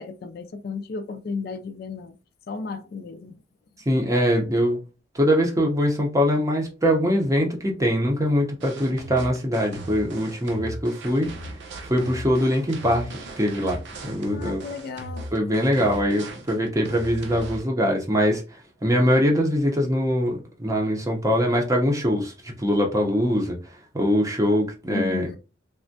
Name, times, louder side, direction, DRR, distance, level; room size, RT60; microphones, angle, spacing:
voice 1, 0.0-2.2 2.5-3.4 14.3-15.3 24.9-25.4, left 4 dB, 50° left, 0.3 m, -33 dB
voice 2, 3.9-4.8 5.1-11.3 11.9-13.1 13.4-14.7 15.3-23.6 23.9-25.3, equal, 15° right, 0.6 m, -22 dB
sound 1, 8.6-17.6, right 1 dB, 65° right, 0.5 m, -37 dB
3.3 x 2.1 x 2.5 m
head